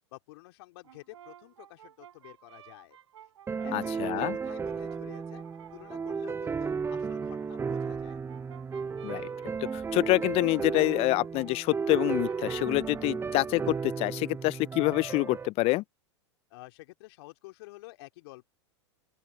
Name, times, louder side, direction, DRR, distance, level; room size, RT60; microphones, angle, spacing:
voice 1, 0.1-3.0 3.6-5.4 5.7-8.2 16.5-18.5, left 21 dB, 60° left, 2.9 m, -50 dB
Brass instrument, 0.8-6.4 7.4-13.2, right 10 dB, 75° right, 7.2 m, -53 dB
sound 1, 3.5-15.5, right 5 dB, 15° right, 1.1 m, -34 dB
voice 2, 3.7-4.4 9.0-9.3 9.7-15.8, left 21 dB, 40° left, 0.7 m, -27 dB
open air
hypercardioid pair, 95°, 15 cm